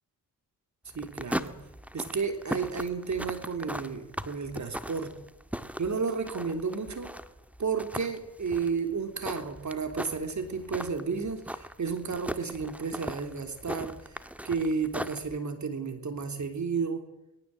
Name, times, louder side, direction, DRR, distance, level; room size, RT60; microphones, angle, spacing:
sound 1, 0.9-15.4, equal, 5° right, 1.7 m, -39 dB
voice 1, 1.0-1.5 1.9-5.1 5.8-7.1 7.6-14.2 14.4-17.0, right 5 dB, 45° right, 7 dB, 3.4 m, -32 dB
24.5 x 21.0 x 7.8 m, 0.92 s
cardioid pair, 70°, 38 cm